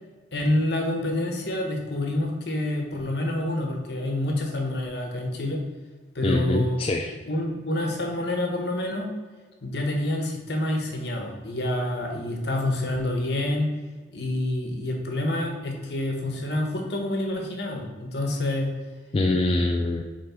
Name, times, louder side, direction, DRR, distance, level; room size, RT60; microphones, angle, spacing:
voice 1, 0.3-5.6 6.1-6.8 7.3-9.1 9.6-13.7 14.1-18.7, left 1 dB, 60° left, 1 dB, 1.3 m, -27 dB
voice 2, 6.2-7.2 19.1-20.0, left 2 dB, 30° left, 3 dB, 0.3 m, -24 dB
5.9 x 4.8 x 4.4 m, 1.4 s
head